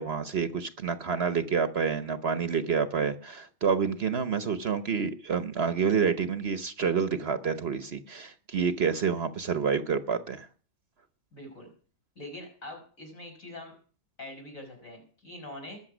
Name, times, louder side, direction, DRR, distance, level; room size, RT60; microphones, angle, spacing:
voice 1, 0.0-10.5, right 6 dB, 50° right, 11 dB, 1.0 m, -28 dB
voice 2, 11.3-11.7 12.2-13.7 14.2-15.8, left 1 dB, 70° left, 1 dB, 5.8 m, -43 dB
20.5 x 7.2 x 6.1 m, 0.41 s
omnidirectional pair, 1.5 m